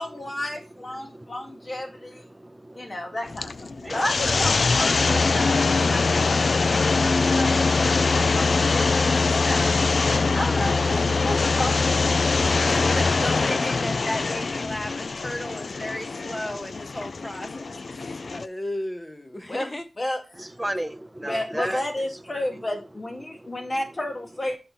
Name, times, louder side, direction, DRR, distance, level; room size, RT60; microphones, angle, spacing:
voice 1, 0.0-2.2 2.7-7.5 7.8-9.8 10.3-11.7 19.5-19.7 20.0-20.5 21.2-24.6, left 1 dB, 35° left, 2.3 m, -32 dB
voice 2, 1.0-3.2 3.7-4.4 20.4-22.4 23.2-23.8, right 1 dB, 10° right, 0.8 m, -38 dB
sound 1, 3.3-18.4, left 4 dB, 65° left, 0.4 m, -23 dB
voice 3, 12.4-19.9, left 1 dB, 20° left, 1.4 m, -34 dB
7.8 x 6.1 x 4.1 m
wide cardioid pair, 95°, 0 cm